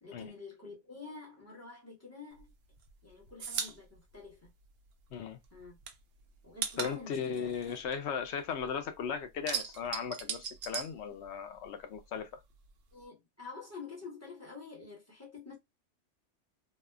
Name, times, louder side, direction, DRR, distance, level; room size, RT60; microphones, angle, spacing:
voice 1, 0.0-2.6 3.0-4.5 5.5-5.8 6.4-7.5 12.9-15.6, left 4 dB, 15° left, 1.0 m, -48 dB
sound 1, 2.4-5.2 5.4-8.7 9.0-11.7 11.9-13.0, right 7 dB, 65° right, 0.7 m, -39 dB
voice 2, 6.8-12.3, left 7 dB, 70° left, 0.8 m, -37 dB
3.1 x 2.1 x 2.3 m
omnidirectional pair, 1.2 m